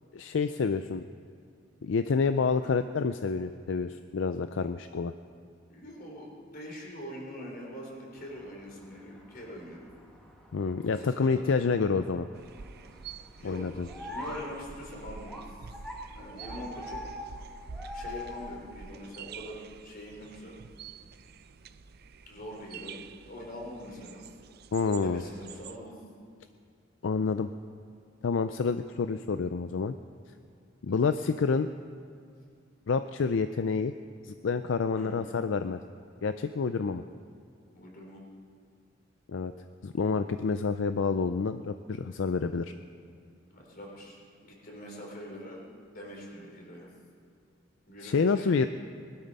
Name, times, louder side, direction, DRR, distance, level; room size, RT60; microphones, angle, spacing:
voice 1, 0.1-1.0 1.8-5.1 10.5-12.3 13.4-13.9 24.7-25.2 27.0-27.5 28.2-29.9 30.8-31.7 32.9-33.9 34.2-35.8 36.2-37.0 39.3-39.5 39.8-42.7 48.0-48.7, left 5 dB, 75° left, 10 dB, 0.4 m, -28 dB
voice 2, 5.7-9.8 10.9-11.7 13.4-15.6 16.1-17.0 17.9-20.6 22.3-24.2 25.0-26.0 27.3-27.4 34.9-35.2 37.7-38.2 43.5-45.6 45.9-46.9 47.9-48.7, equal, 50° left, -1 dB, 3.7 m, -43 dB
sound 1, 8.2-19.0, left 1 dB, 5° left, 1.5 m, -45 dB
sound 2, 12.3-25.8, right 5 dB, 55° right, 0.5 m, -47 dB
20.0 x 12.5 x 5.4 m, 2.4 s
head